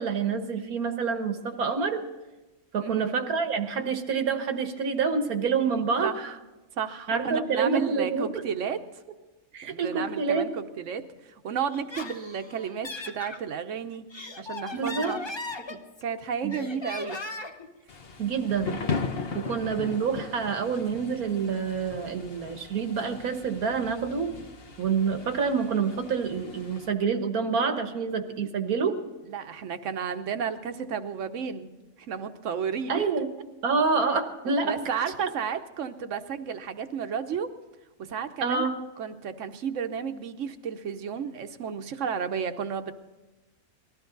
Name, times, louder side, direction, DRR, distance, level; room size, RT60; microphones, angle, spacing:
voice 1, 0.0-2.0 2.7-6.1 7.1-8.4 9.5-10.5 14.7-15.1 15.7-15.8 16.4-16.6 18.2-18.8 19.3-24.4 24.8-29.0 32.9-33.3 33.6-34.8 38.4-38.8, right 5 dB, 90° right, 6 dB, 1.8 m, -27 dB
voice 2, 2.8-3.2 6.0-6.4 6.8-8.8 9.6-14.1 14.4-15.2 16.0-17.2 19.5-19.6 29.3-31.7 32.0-33.1 34.5-37.5 38.1-38.7 39.0-42.9, right 7 dB, 60° right, 9 dB, 1.2 m, -32 dB
Laughter, 11.7-13.4 13.9-16.1 16.5-17.7, left 3 dB, 25° left, 0.7 m, -38 dB
Thunder / Rain, 17.9-26.9, left 4 dB, 50° left, 1.0 m, -38 dB
20.0 x 13.5 x 4.0 m, 1.1 s
omnidirectional pair, 1.5 m